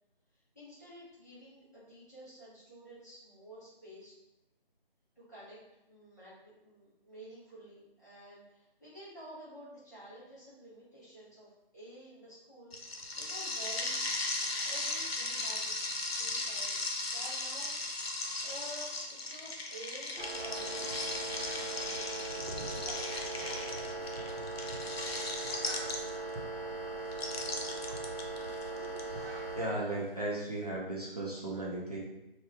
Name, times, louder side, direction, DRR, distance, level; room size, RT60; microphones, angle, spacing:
voice 1, 0.3-4.1 5.2-5.6 5.9-14.0 14.6-15.9 16.2-18.0 18.4-23.4 24.1-24.4, right 1 dB, 20° left, -13 dB, 0.8 m, -51 dB
sound 1, 12.7-26.3 27.1-29.0, left 2 dB, 80° left, 0.7 m, -37 dB
sound 2, 20.2-29.6, right 2 dB, 70° right, 0.8 m, -39 dB
voice 2, 28.7-32.0, right 1 dB, 40° right, -5 dB, 0.6 m, -37 dB
3.0 x 2.3 x 3.3 m, 0.92 s
figure-of-eight pair, 175°, 30 cm